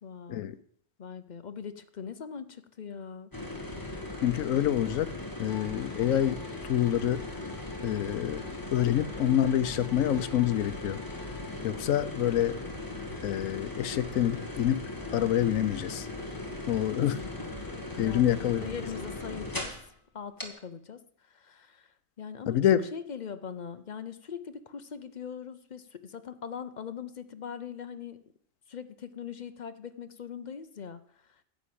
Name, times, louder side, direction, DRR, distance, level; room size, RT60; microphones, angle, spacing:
voice 1, 0.0-0.5 1.0-3.3 16.9-17.3 18.0-19.7 20.1-28.2 28.7-31.4, left 7 dB, 45° left, 11 dB, 0.6 m, -41 dB
sound 1, 3.3-19.9 20.4-20.5, left 2 dB, 15° left, 1.7 m, -38 dB
voice 2, 4.2-5.1 5.4-7.2 7.8-8.4 8.7-11.0 11.6-12.6 13.2-14.8 15.1-16.1 16.7-17.2 18.0-18.6 22.5-22.8, left 11 dB, 80° left, 15 dB, 1.1 m, -27 dB
Bowed string instrument, 5.5-11.7, left 4 dB, 60° left, 2.3 m, -53 dB
10.5 x 6.3 x 8.6 m, 0.65 s
omnidirectional pair, 1.4 m